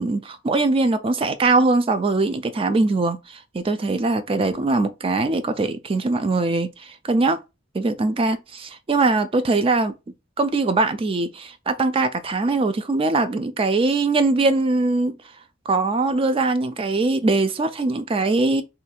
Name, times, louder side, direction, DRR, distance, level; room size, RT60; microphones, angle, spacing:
voice 1, 0.0-7.4 7.7-9.9 10.4-15.2 15.7-18.6, right 3 dB, 30° right, 0.3 m, -21 dB
2.7 x 2.3 x 4.1 m
head